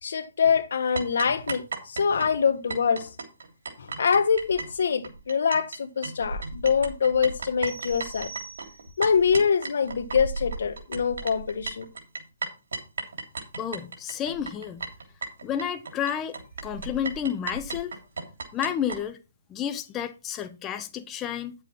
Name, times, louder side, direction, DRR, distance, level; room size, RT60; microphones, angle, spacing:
voice 1, 0.0-3.1 3.8-8.3 9.0-11.9, left 6 dB, 70° left, 1.3 m, -24 dB
sound 1, 1.0-5.8 6.0-19.0, right 3 dB, 75° right, 3.1 m, -35 dB
sound 2, 7.6-9.2, right 6 dB, 50° right, 5.0 m, -44 dB
voice 2, 13.6-14.8 15.4-17.9 18.5-19.2 19.5-21.5, left 9 dB, 15° left, 0.8 m, -31 dB
9.9 x 7.5 x 4.3 m
hypercardioid pair, 155°, 0 cm